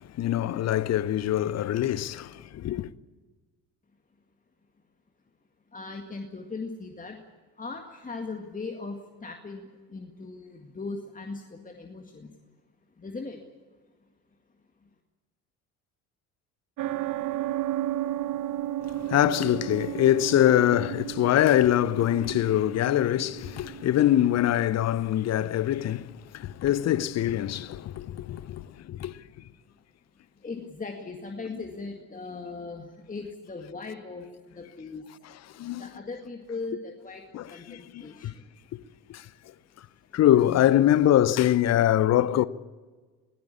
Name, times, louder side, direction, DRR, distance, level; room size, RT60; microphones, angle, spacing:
voice 1, 0.2-2.9 19.0-29.1 31.5-31.6 35.6-35.9 37.3-38.3 39.1-39.2 40.1-42.5, left 12 dB, 35° left, 0.8 m, -24 dB
voice 2, 5.7-7.2 7.6-9.6 9.9-12.3 13.0-13.4 30.4-34.3 34.5-35.0 35.8-37.2 37.5-38.3, left 3 dB, 15° left, 2.0 m, -38 dB
sound 1, 16.8-24.2, right 13 dB, 45° right, 1.0 m, -33 dB
22.0 x 17.0 x 8.7 m
figure-of-eight pair, 60°, 47 cm